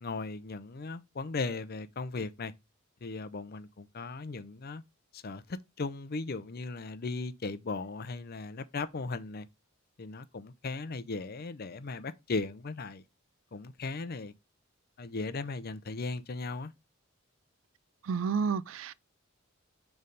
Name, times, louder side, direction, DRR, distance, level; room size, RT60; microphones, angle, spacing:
voice 1, 0.0-2.5 3.0-4.8 5.1-9.5 10.0-13.0 13.5-14.3 15.0-16.7, left 3 dB, 50° left, 0.6 m, -37 dB
voice 2, 18.0-18.9, right 5 dB, 70° right, 0.4 m, -30 dB
6.7 x 3.4 x 5.2 m
head